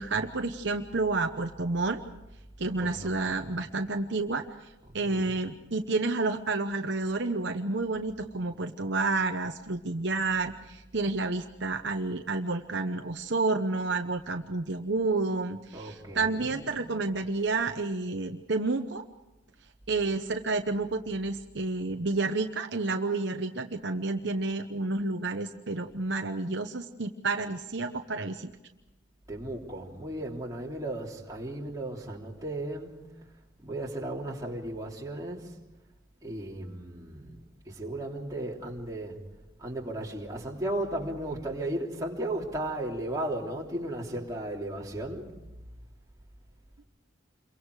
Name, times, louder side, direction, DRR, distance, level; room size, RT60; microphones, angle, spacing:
voice 1, 0.0-2.0 2.6-19.0 19.9-28.5, right 3 dB, 60° right, 0.9 m, -30 dB
voice 2, 2.8-3.6 4.8-5.4 15.7-16.8 29.3-33.1 33.6-35.6 36.2-37.4 37.6-39.2 39.6-45.3, right 1 dB, 15° right, 3.3 m, -35 dB
28.5 x 23.5 x 4.8 m
head